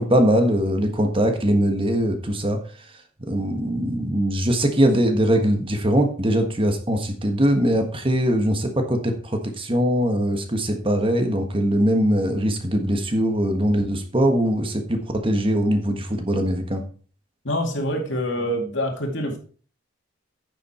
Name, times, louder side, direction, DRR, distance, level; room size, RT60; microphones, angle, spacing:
voice 1, 0.0-2.6 3.2-16.8, equal, 25° right, 5 dB, 1.4 m, -21 dB
voice 2, 17.4-19.4, equal, 65° left, 3 dB, 2.3 m, -25 dB
9.5 x 7.2 x 4.3 m, 0.41 s
head